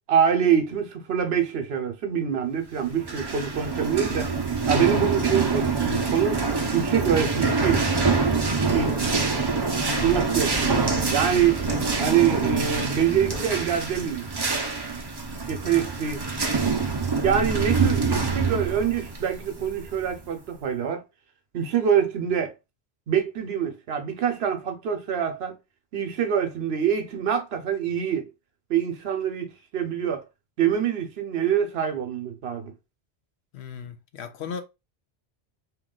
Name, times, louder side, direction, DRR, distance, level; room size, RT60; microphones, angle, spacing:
voice 1, 0.1-4.3 4.7-6.4 6.7-7.8 8.7-9.1 10.0-11.6 12.0-14.3 15.5-16.2 17.2-21.0 21.5-22.5 23.1-25.6 25.9-28.3 28.7-30.2 30.6-32.7, right 8 dB, 65° right, 0.9 m, -25 dB
sound 1, 2.9-20.3, right 4 dB, 30° right, 0.5 m, -25 dB
sound 2, 7.1-13.8, left 3 dB, 40° left, 0.9 m, -40 dB
voice 2, 9.8-10.2 33.5-34.6, left 7 dB, 70° left, 0.9 m, -36 dB
3.0 x 2.9 x 3.7 m
omnidirectional pair, 1.2 m